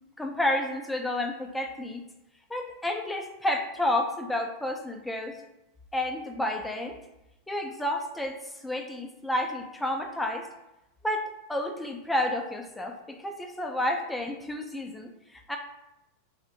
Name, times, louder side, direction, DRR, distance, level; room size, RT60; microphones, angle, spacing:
voice 1, 0.2-2.0 2.5-5.4 5.9-7.0 7.5-10.5 11.0-15.6, left 1 dB, 5° left, 3 dB, 0.4 m, -30 dB
2.4 x 2.1 x 2.8 m, 0.92 s
hypercardioid pair, 95°, 0 cm